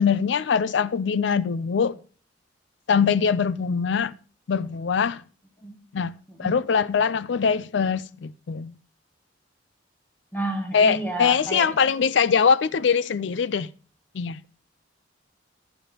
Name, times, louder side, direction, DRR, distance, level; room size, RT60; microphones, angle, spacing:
voice 1, 0.0-2.0 2.9-4.1 4.5-5.2 5.9-6.1 6.4-8.7 10.7-13.7 14.1-14.4, left 6 dB, 65° left, 0.4 m, -22 dB
voice 2, 10.3-11.9, right 1 dB, 10° left, 1.6 m, -31 dB
11.0 x 10.0 x 2.9 m
head